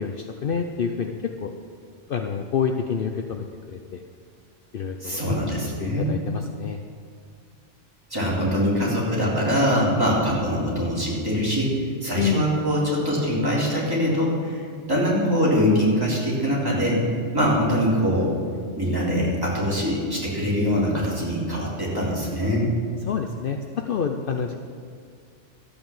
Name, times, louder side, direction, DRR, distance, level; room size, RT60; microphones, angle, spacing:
voice 1, 0.0-1.5 2.1-4.0 4.7-5.4 5.8-6.8 12.2-12.5 23.0-24.5, left 6 dB, 55° left, 5 dB, 0.8 m, -28 dB
voice 2, 5.0-6.1 8.1-14.6 14.9-17.0 17.3-18.3 18.8-22.7, equal, 20° right, -7 dB, 3.6 m, -23 dB
13.0 x 8.7 x 7.3 m, 2.1 s
omnidirectional pair, 1.2 m